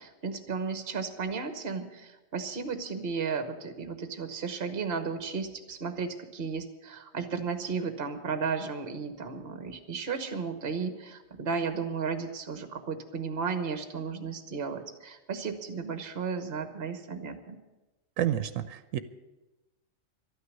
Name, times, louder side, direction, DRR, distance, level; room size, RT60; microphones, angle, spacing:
voice 1, 0.0-17.6, right 5 dB, 50° right, 8 dB, 1.3 m, -34 dB
voice 2, 18.2-19.0, right 11 dB, 85° right, 12 dB, 1.1 m, -29 dB
12.5 x 9.5 x 9.6 m, 1.1 s
omnidirectional pair, 1.3 m